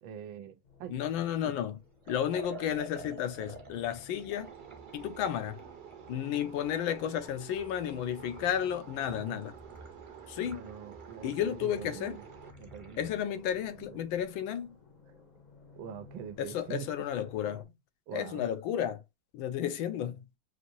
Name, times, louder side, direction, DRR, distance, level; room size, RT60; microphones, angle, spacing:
voice 1, 0.0-0.9 1.4-1.5 9.0-9.4 10.5-12.2 12.6-13.1 13.8-13.9 15.7-16.9 18.1-18.4, right 9 dB, 90° right, 1.5 m, -44 dB
sound 1, 0.6-17.6, left 4 dB, 45° left, 0.5 m, -58 dB
voice 2, 0.9-1.8 2.1-4.5 4.9-5.6 6.1-9.5 10.3-10.7 11.2-12.2 13.0-14.8 16.4-17.7 18.1-19.0 19.3-20.2, left 10 dB, 85° left, 1.4 m, -32 dB
Liquid, 2.0-13.2, right 3 dB, 25° right, 0.7 m, -51 dB
sound 2, 4.3-12.5, right 9 dB, 60° right, 1.3 m, -50 dB
5.9 x 2.6 x 2.5 m
omnidirectional pair, 2.1 m